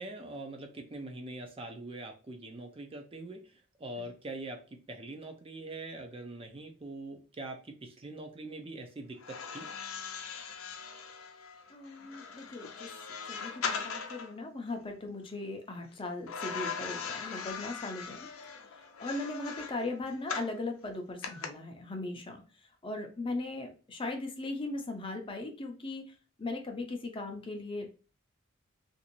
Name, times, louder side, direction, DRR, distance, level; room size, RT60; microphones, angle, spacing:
voice 1, 0.0-3.4 3.8-9.7, right 2 dB, 25° right, 4 dB, 0.5 m, -43 dB
sound 1, 9.2-14.3 16.3-20.6 21.2-21.5, left 6 dB, 70° left, 0.5 m, -40 dB
voice 2, 11.7-12.9 13.2-18.2 19.0-22.4 22.8-26.1 26.4-27.9, left 2 dB, 25° left, 3 dB, 0.5 m, -38 dB
3.0 x 2.6 x 2.9 m, 0.36 s
head